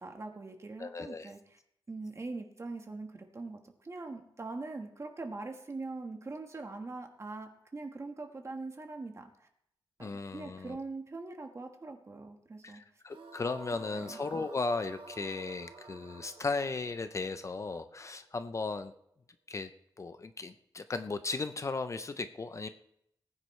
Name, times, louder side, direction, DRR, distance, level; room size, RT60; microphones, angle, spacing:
voice 1, 0.0-1.6 1.9-9.3 10.0-12.8 13.7-14.2, right 3 dB, 30° right, 4 dB, 1.4 m, -42 dB
voice 2, 0.8-1.3 10.0-10.8 12.6-18.9 19.5-19.7 20.0-22.7, left 3 dB, 35° left, 10 dB, 0.5 m, -36 dB
sound 1, 13.1-18.3, right 3 dB, 80° right, 1.5 m, -51 dB
19.5 x 9.3 x 3.2 m, 0.76 s
wide cardioid pair, 155°, 9 cm